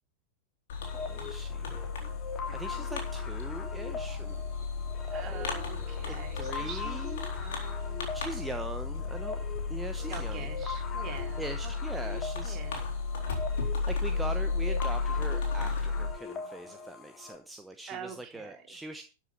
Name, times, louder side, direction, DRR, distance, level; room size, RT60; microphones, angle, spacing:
Fireworks, 0.7-16.1, left 4 dB, 55° left, 4.1 m, -34 dB
sound 1, 0.8-17.4, left 5 dB, 30° left, 3.0 m, -42 dB
voice 1, 0.8-1.8 2.5-4.4 5.0-7.4 8.1-9.4 9.7-10.5 11.4-12.6 13.9-19.0, right 2 dB, 5° right, 7 dB, 1.0 m, -42 dB
voice 2, 5.1-7.0 7.3-8.4 10.1-12.9 17.9-18.8, right 7 dB, 30° right, 3 dB, 3.4 m, -45 dB
13.0 x 7.2 x 5.6 m, 0.35 s
figure-of-eight pair, 90°, 0 cm